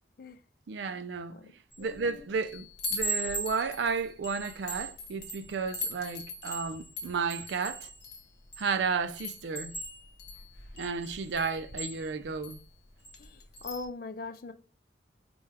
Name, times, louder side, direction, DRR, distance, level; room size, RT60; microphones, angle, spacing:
voice 1, 0.7-1.4 1.8-7.9 8.6-9.7 10.8-12.6, right 5 dB, 80° right, 0.4 m, -33 dB
Chime, 1.7-2.0 2.4-8.7 9.2-12.6 13.0-13.3 13.5-13.9, equal, 80° left, 1.0 m, -39 dB
voice 2, 1.8-2.3 13.2-14.5, left 3 dB, 55° left, 0.4 m, -41 dB
4.2 x 2.3 x 3.3 m
head